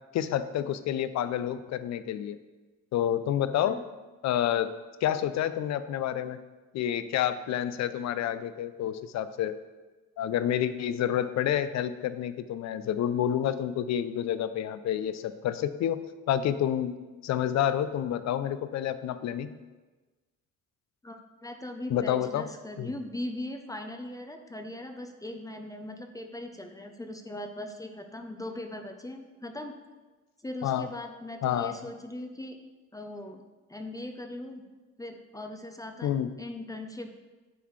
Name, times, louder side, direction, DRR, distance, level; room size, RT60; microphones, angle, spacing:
voice 1, 0.1-2.4 2.9-3.8 4.2-4.7 5.0-6.4 6.7-9.5 10.2-16.0 16.3-17.0 17.2-19.5 21.9-22.4 22.8-22.9 30.6-30.9 31.4-31.7 36.0-36.3, left 10 dB, 65° left, 13 dB, 0.5 m, -29 dB
voice 2, 21.0-29.7 30.4-32.6 32.9-33.4 33.7-34.6 35.0-36.1 36.4-37.1, left 1 dB, 10° left, 5 dB, 0.5 m, -39 dB
9.2 x 4.0 x 3.1 m, 1.2 s
cardioid pair, 90°, 30 cm